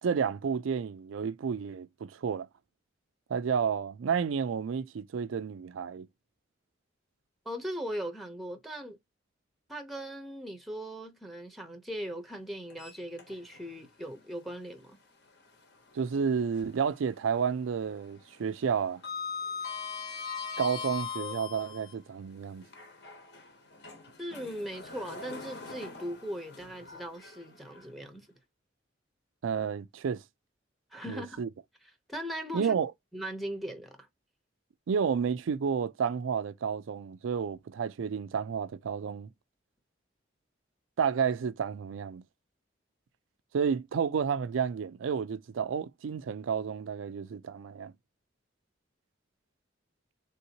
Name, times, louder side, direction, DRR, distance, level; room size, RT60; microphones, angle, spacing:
voice 1, 0.0-2.5 3.3-6.1 15.9-19.0 20.6-22.6 29.4-30.2 31.1-31.5 32.5-32.9 34.9-39.3 41.0-42.2 43.5-47.9, right 6 dB, 90° right, 0.4 m, -31 dB
voice 2, 7.4-9.0 9.7-15.0 24.2-28.3 30.9-31.4 32.1-32.7 33.1-34.1, equal, ahead, 0.7 m, -39 dB
Sliding door, 12.7-13.7 14.1-14.2 15.9-16.9 17.2-17.6 17.8-21.9 22.6-27.8, left 5 dB, 60° left, 1.0 m, -41 dB
3.6 x 2.7 x 2.7 m
head